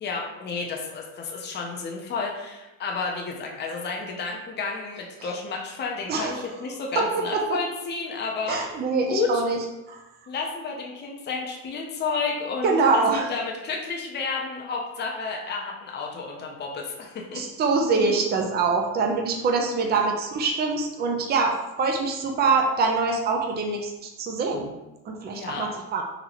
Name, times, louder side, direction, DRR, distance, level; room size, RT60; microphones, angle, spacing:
voice 1, 0.0-8.8 9.1-9.4 10.3-17.4 19.8-19.9 25.3-25.7, left 4 dB, 25° left, 0 dB, 0.7 m, -31 dB
voice 2, 8.5-9.6 9.9-10.0 12.6-13.3 17.3-23.9 24.2-24.7 25.1-26.0, right 4 dB, 25° right, 2 dB, 0.5 m, -24 dB
3.9 x 3.0 x 2.9 m, 0.99 s
cardioid pair, 115°, 39 cm